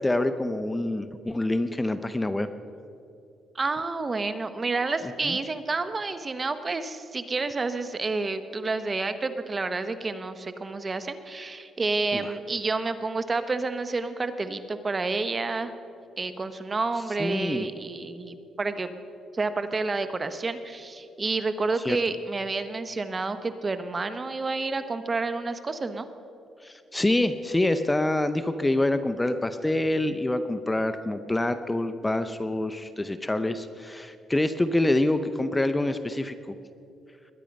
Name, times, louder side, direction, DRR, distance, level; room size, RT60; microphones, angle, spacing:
voice 1, 0.0-2.5 5.2-5.4 12.1-12.3 17.2-17.7 21.8-22.0 26.6-36.3, left 1 dB, 15° left, 10 dB, 0.7 m, -26 dB
voice 2, 3.5-15.7 16.2-18.9 19.3-26.1, right 3 dB, 30° right, 10 dB, 1.0 m, -29 dB
21.5 x 10.0 x 5.3 m, 2.7 s
cardioid pair, 90°, 0 cm